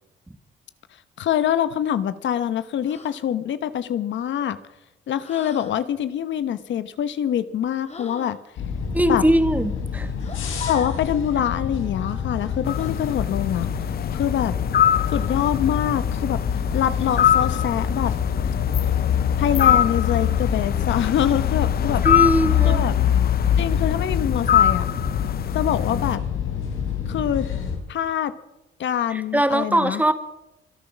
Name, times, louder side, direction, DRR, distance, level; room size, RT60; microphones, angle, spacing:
voice 1, 1.2-4.6 5.1-8.4 9.1-9.2 10.7-13.7 14.1-14.6 15.1-16.4 16.7-18.1 19.4-22.0 22.6-22.9 23.6-24.9 25.5-26.2 27.1-27.5 27.9-28.3 28.8-30.0, left 9 dB, 70° left, 13 dB, 1.0 m, -25 dB
sound 1, 2.8-3.2 5.2-5.8 7.8-8.4 10.2-11.1 12.8-13.0 15.1-15.6 17.0-17.5, left 4 dB, 35° left, 3.0 m, -39 dB
sound 2, 8.6-27.8, left 6 dB, 85° left, 4.0 m, -28 dB
voice 2, 8.9-10.1 22.0-22.8 29.1-30.1, right 1 dB, 10° right, 10 dB, 1.6 m, -21 dB
sound 3, 12.7-26.2, left 10 dB, 50° left, 0.6 m, -22 dB
25.0 x 8.7 x 6.1 m, 0.92 s
cardioid pair, 90°, 20 cm